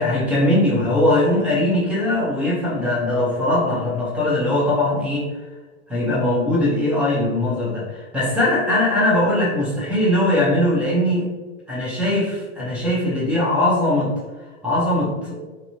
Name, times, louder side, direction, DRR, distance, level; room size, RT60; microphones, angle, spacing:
voice 1, 0.0-5.3 5.9-11.3 11.7-14.1 14.6-15.4, left 1 dB, 5° right, -7 dB, 0.5 m, -20 dB
2.9 x 2.6 x 2.6 m, 1.3 s
supercardioid pair, 145°, 39 cm